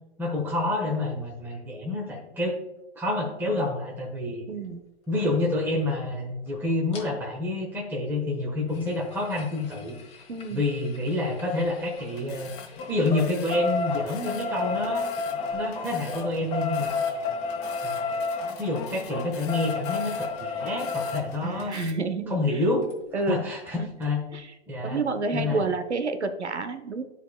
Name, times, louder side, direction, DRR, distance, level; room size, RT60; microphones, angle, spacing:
voice 1, 0.2-2.6 2.9-4.4 5.1-10.0 10.5-12.5 12.9-15.0 15.5-16.9 17.8-18.2 18.6-21.7 22.3-22.9 23.3-24.2 24.7-25.0 25.3-25.6, left 2 dB, 5° right, -3 dB, 1.2 m, -28 dB
voice 2, 4.5-4.8 10.3-10.6 21.4-22.6 23.1-23.4 23.8-23.9 24.3-24.5 24.8-27.0, right 3 dB, 90° right, 10 dB, 0.9 m, -29 dB
sound 1, 6.9-7.0 8.7-12.2 12.5-21.2 22.9-23.0 23.3-23.4 23.7-23.8, left 4 dB, 20° left, 1.2 m, -31 dB
sound 2, 12.0-21.9, left 7 dB, 35° left, 1.2 m, -46 dB
12.5 x 4.7 x 2.3 m, 1.0 s
hypercardioid pair, 125°, 33 cm